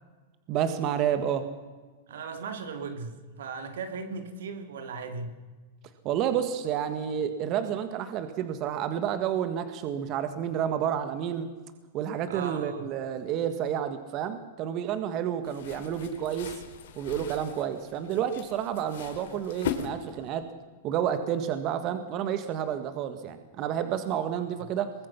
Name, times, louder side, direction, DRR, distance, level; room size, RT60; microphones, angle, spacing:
voice 1, 0.5-1.5 6.0-11.5 11.9-16.6 17.0-20.5 20.8-24.9, right 9 dB, 40° right, 9 dB, 1.6 m, -30 dB
voice 2, 2.1-5.4 12.3-12.9 24.5-24.6, right 4 dB, 80° right, 8 dB, 2.8 m, -37 dB
sound 1, 15.4-20.4, left 8 dB, 70° left, 2.8 m, -39 dB
23.5 x 21.0 x 5.9 m, 1.4 s
hypercardioid pair, 140°, 0 cm